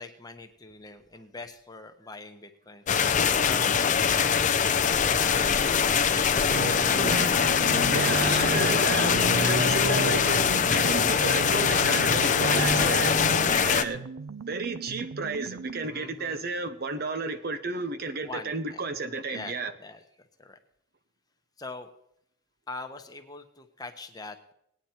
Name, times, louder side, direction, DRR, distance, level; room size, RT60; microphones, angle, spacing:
voice 1, 0.0-2.8 3.5-4.1 4.9-7.7 13.4-13.9 15.9-16.4 18.2-18.8 19.3-20.6 21.6-21.9 22.7-24.5, left 3 dB, 20° left, 0.9 m, -42 dB
sound 1, 2.9-13.8, left 7 dB, 35° left, 0.5 m, -23 dB
sound 2, 6.5-13.5, right 1 dB, 65° right, 1.7 m, -31 dB
voice 2, 7.1-7.6 7.9-13.3 13.6-14.0 14.5-19.7, right 3 dB, 45° right, 0.8 m, -32 dB
sound 3, 8.3-16.0, right 5 dB, 90° right, 0.5 m, -40 dB
18.5 x 9.5 x 4.4 m
head